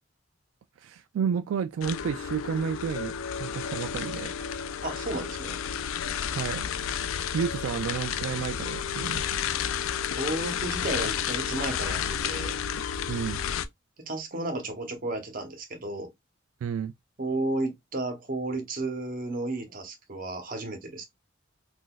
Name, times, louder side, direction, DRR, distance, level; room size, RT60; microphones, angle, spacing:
voice 1, 0.8-4.3 6.2-6.7 7.3-9.5 13.1-13.4 16.6-16.9, right 7 dB, 85° right, 0.3 m, -31 dB
sound 1, 1.8-13.7, left 8 dB, 90° left, 0.3 m, -31 dB
voice 2, 4.8-5.6 10.2-12.6 14.0-16.1 17.2-21.0, right 2 dB, 45° right, 0.9 m, -33 dB
3.8 x 2.5 x 2.3 m
head